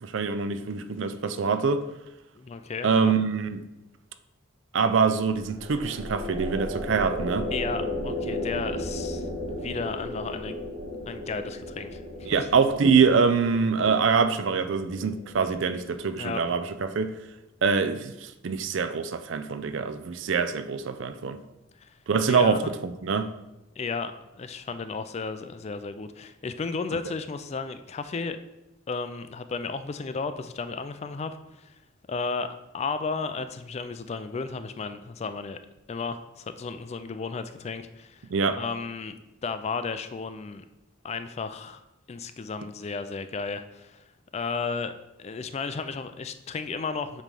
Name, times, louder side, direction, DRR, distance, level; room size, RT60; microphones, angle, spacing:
voice 1, 0.0-1.8 2.8-3.6 4.7-7.5 12.3-17.1 17.6-21.4 22.1-23.3 38.3-38.6, right 5 dB, 60° right, 10 dB, 0.4 m, -24 dB
voice 2, 2.4-3.1 7.5-10.6 11.1-12.5 16.2-16.5 21.8-22.0 22.3-22.7 23.8-28.4 28.9-31.7 32.1-32.5 32.7-35.6 35.9-38.3 38.6-39.1 39.4-40.6 41.0-41.8 42.1-44.0 44.3-44.9 45.2-47.2, left 4 dB, 30° left, 10 dB, 0.3 m, -33 dB
sound 1, 5.3-16.6, left 1 dB, 80° right, 0.9 m, -35 dB
7.4 x 3.2 x 5.3 m, 0.94 s
head